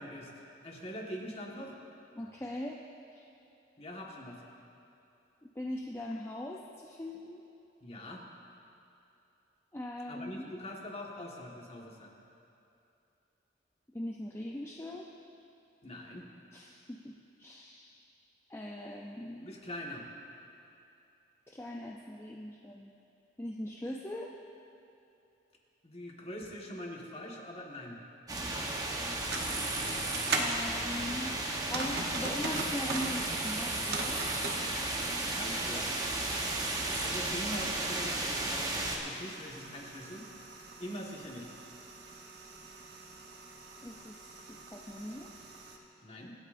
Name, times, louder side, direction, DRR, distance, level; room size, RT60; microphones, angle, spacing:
voice 1, 0.0-1.8 3.8-4.4 7.8-8.2 10.1-12.1 15.8-16.3 19.4-20.0 25.8-28.0 35.3-35.9 37.0-40.2 40.8-41.6 46.0-46.3, equal, 35° left, -1 dB, 1.5 m, -43 dB
voice 2, 2.2-2.8 3.2-3.3 5.6-7.4 9.7-10.5 13.9-15.1 16.5-17.9 18.5-19.5 21.5-22.9 23.4-24.3 30.3-31.4 31.6-34.2 43.8-44.2 44.5-45.3, left 1 dB, 15° left, -1 dB, 0.5 m, -40 dB
sound 1, 28.3-39.0, right 2 dB, 20° right, 1.0 m, -34 dB
sound 2, 29.2-30.6 31.5-33.2 33.6-34.6 35.8-45.8, right 3 dB, 65° right, 1.0 m, -41 dB
25.0 x 8.6 x 2.6 m, 2.8 s
head